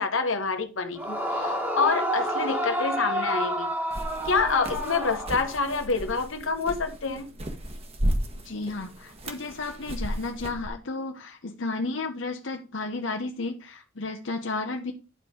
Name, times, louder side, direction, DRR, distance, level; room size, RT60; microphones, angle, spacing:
voice 1, 0.0-3.7 4.2-7.3, left 4 dB, 90° left, 1.3 m, -27 dB
Yell / Screaming, 1.0-5.9, equal, 10° right, 1.5 m, -29 dB
sound 1, 3.9-10.7, equal, 30° right, 1.4 m, -34 dB
voice 2, 8.4-14.9, left 3 dB, 70° left, 1.0 m, -33 dB
10.5 x 4.4 x 5.0 m
head